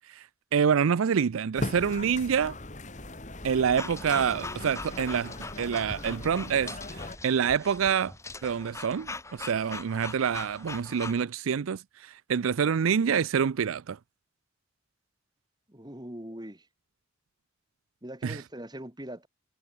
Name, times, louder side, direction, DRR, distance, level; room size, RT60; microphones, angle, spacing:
voice 1, 0.5-2.5 3.4-6.8 7.2-8.1 8.4-14.0 18.2-18.4, right 7 dB, 85° right, 0.4 m, -26 dB
sound 1, 1.6-7.2, left 1 dB, 35° left, 2.3 m, -39 dB
sound 2, 3.8-11.2, left 3 dB, 15° left, 3.4 m, -42 dB
voice 2, 15.7-16.7 18.0-19.3, right 1 dB, 20° right, 2.2 m, -41 dB
head